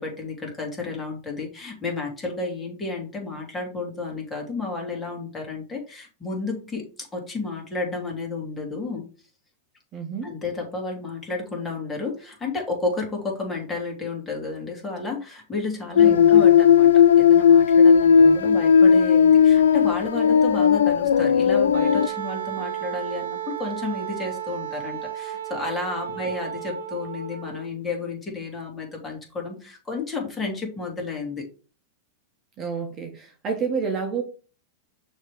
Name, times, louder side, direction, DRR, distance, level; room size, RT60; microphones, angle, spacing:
voice 1, 0.0-9.0 10.2-31.4, left 3 dB, 15° left, 0 dB, 2.5 m, -32 dB
voice 2, 9.9-10.3 16.0-16.6 18.2-18.6 32.6-34.2, right 5 dB, 30° right, 3 dB, 1.4 m, -30 dB
sound 1, 16.0-22.1, left 7 dB, 90° left, 0.3 m, -16 dB
Wind instrument woodwind instrument, 21.7-27.7, right 10 dB, 90° right, 0.8 m, -33 dB
6.3 x 3.3 x 5.0 m, 0.36 s
hypercardioid pair, 125°, 0 cm